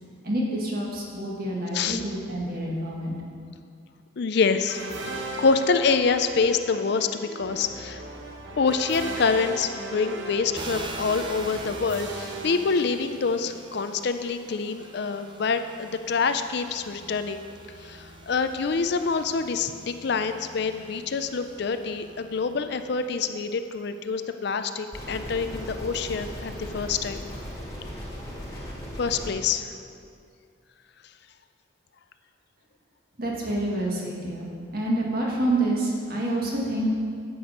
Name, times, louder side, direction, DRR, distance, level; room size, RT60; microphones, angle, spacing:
voice 1, 0.2-3.2 33.2-36.9, right 1 dB, 45° right, -3 dB, 1.8 m, -27 dB
voice 2, 4.2-4.8 5.4-8.0 8.6-17.4 17.8-27.2 29.0-29.7, left 5 dB, 55° left, 9 dB, 0.4 m, -26 dB
sound 1, 4.6-13.5, right 2 dB, 65° right, 1.1 m, -38 dB
sound 2, 10.5-23.9 24.6-27.6, right 2 dB, 25° right, 0.6 m, -44 dB
sound 3, 24.9-29.3, equal, 15° left, 2.0 m, -37 dB
10.0 x 7.7 x 5.1 m, 2.3 s
head